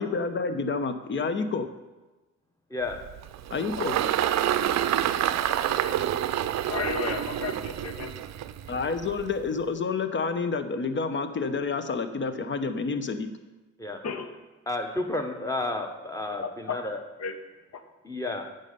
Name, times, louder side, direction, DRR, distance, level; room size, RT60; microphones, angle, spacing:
voice 1, 0.0-1.7 3.5-3.9 8.7-13.3, left 4 dB, 40° left, 9 dB, 0.9 m, -29 dB
Engine, 2.9-9.5, right 11 dB, 60° right, 0.6 m, -28 dB
voice 2, 6.7-8.1 14.0-14.3 16.7-16.8 17.2-17.3 17.7-17.8, left 5 dB, 55° left, 8 dB, 1.1 m, -32 dB
voice 3, 14.7-17.0 18.0-18.4, left 2 dB, 10° left, 4 dB, 1.3 m, -31 dB
8.9 x 5.5 x 6.9 m, 1.2 s
cardioid pair, 90°, 30 cm